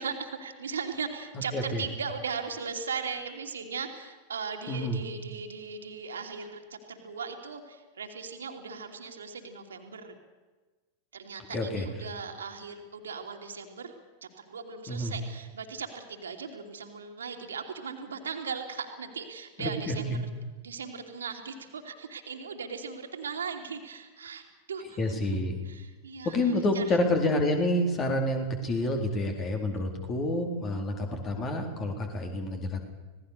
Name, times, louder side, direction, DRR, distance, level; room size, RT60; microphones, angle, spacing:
voice 1, 0.0-10.1 11.1-13.9 14.2-20.2 20.6-24.4 24.7-25.2 25.6-27.0, right 5 dB, 70° right, 4 dB, 2.8 m, -38 dB
voice 2, 1.5-1.8 4.7-5.0 11.5-11.9 14.9-15.1 19.6-20.2 25.0-25.6 26.2-32.8, left 1 dB, 30° left, 4 dB, 4.0 m, -28 dB
26.0 x 18.5 x 6.8 m, 1.3 s
figure-of-eight pair, 90°, 0 cm